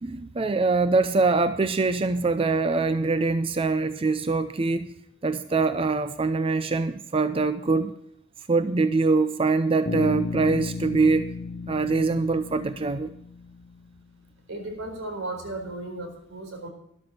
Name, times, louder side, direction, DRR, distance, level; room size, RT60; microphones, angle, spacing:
voice 1, 0.0-4.9 5.2-7.9 8.5-11.3 11.7-13.1, right 3 dB, 30° right, 11 dB, 0.5 m, -23 dB
Bass guitar, 9.9-13.9, left 4 dB, 45° left, 0.7 m, -34 dB
voice 2, 14.5-16.7, right 2 dB, 90° right, 3 dB, 4.4 m, -35 dB
13.0 x 12.0 x 4.3 m, 0.75 s
head